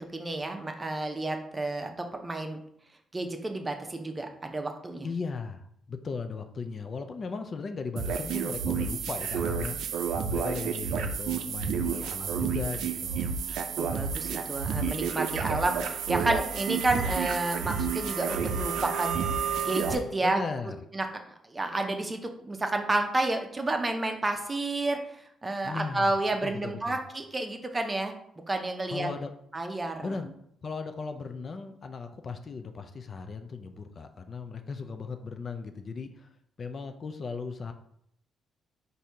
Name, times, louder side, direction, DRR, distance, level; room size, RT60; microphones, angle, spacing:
voice 1, 0.0-2.6 3.1-5.1 13.8-19.2 19.6-20.4 20.9-21.1 21.4-28.1 28.5-29.1 29.5-30.1, right 2 dB, 20° right, 5 dB, 0.6 m, -30 dB
voice 2, 5.0-9.8 10.3-13.3 20.2-20.8 25.6-26.1 26.4-27.0 28.9-29.3 30.0-30.3 30.6-36.3 36.6-37.7, left 4 dB, 45° left, 7 dB, 0.4 m, -37 dB
sound 1, 8.0-19.9, right 6 dB, 80° right, 0.5 m, -30 dB
4.2 x 2.7 x 4.7 m, 0.72 s
cardioid pair, 90°, 0 cm